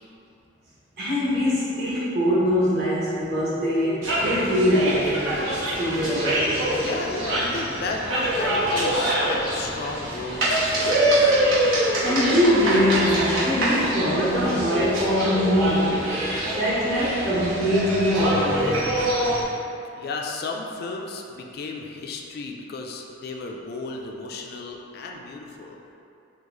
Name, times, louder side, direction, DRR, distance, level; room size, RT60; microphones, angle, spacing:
voice 1, 1.0-5.3 5.8-6.7 12.0-16.1 16.5-18.8, equal, 55° right, -10 dB, 1.4 m, -23 dB
sound 1, 4.0-19.4, right 1 dB, 85° right, 1.2 m, -25 dB
voice 2, 6.8-11.4 19.9-25.8, left 3 dB, 55° left, 1 dB, 0.3 m, -34 dB
4.6 x 2.4 x 3.9 m, 2.7 s
head